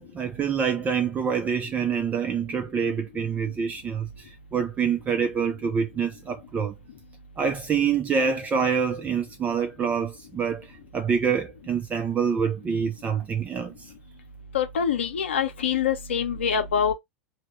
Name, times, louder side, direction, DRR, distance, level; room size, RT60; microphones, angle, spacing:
voice 1, 0.0-6.7 7.4-13.9, right 6 dB, 25° right, 0.4 m, -26 dB
voice 2, 14.5-16.9, left 7 dB, 75° left, 0.7 m, -25 dB
2.8 x 2.1 x 3.0 m
figure-of-eight pair, 90°, 6 cm